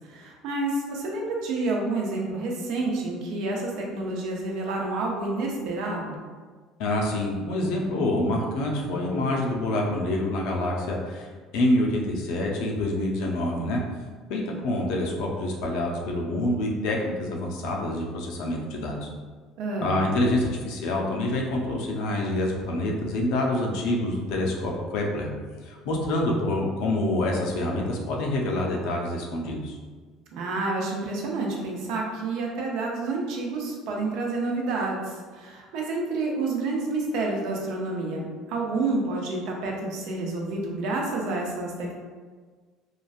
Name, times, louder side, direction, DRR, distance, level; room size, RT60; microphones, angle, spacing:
voice 1, 0.1-6.2 19.6-20.0 30.3-42.0, right 2 dB, 70° right, -1 dB, 0.6 m, -29 dB
voice 2, 6.8-11.3 11.5-13.8 14.3-19.1 19.8-25.3 25.6-29.7, left 1 dB, 75° left, 0 dB, 0.5 m, -26 dB
3.0 x 2.4 x 2.4 m, 1.5 s
cardioid pair, 125°, 0 cm